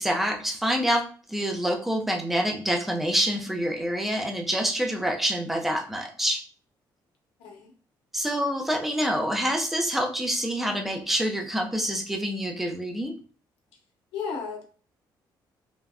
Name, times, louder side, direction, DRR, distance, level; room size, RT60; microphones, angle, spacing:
voice 1, 0.0-6.4 8.1-13.1, equal, 5° right, 2 dB, 0.4 m, -27 dB
voice 2, 7.4-7.7 14.1-14.6, left 5 dB, 90° left, 1 dB, 0.8 m, -34 dB
3.3 x 2.1 x 2.4 m, 0.40 s
cardioid pair, 165°, 8 cm